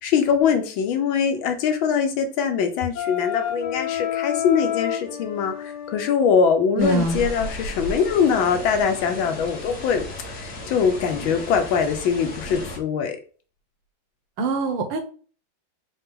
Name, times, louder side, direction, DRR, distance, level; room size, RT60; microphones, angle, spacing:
voice 1, 0.0-13.2, left 6 dB, 75° left, 6 dB, 1.5 m, -22 dB
Wind instrument woodwind instrument, 3.0-6.2, left 11 dB, 60° left, 1.3 m, -29 dB
sound 1, 6.8-12.8, left 1 dB, 45° left, 0.9 m, -35 dB
voice 2, 6.8-7.2 14.4-15.0, right 2 dB, 70° right, 6 dB, 1.6 m, -23 dB
4.9 x 2.9 x 3.6 m, 0.40 s
omnidirectional pair, 2.2 m